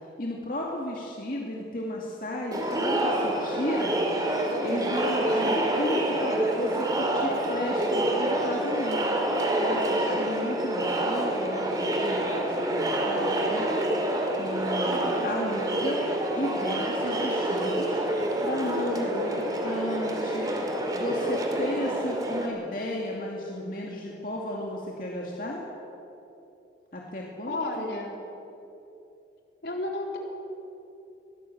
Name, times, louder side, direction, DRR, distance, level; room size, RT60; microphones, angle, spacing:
voice 1, 0.2-4.0 4.6-9.0 9.6-13.7 14.3-16.1 16.3-18.0 18.4-20.5 20.9-25.6 26.9-27.6, left 1 dB, 50° left, -2 dB, 2.5 m, -34 dB
Crowd, 2.5-22.5, right 1 dB, 20° right, 2.5 m, -27 dB
voice 2, 5.2-5.6 14.8-15.4 27.5-28.1 29.6-30.2, left 2 dB, 70° left, 0 dB, 3.9 m, -33 dB
23.0 x 18.5 x 7.9 m, 2.9 s
head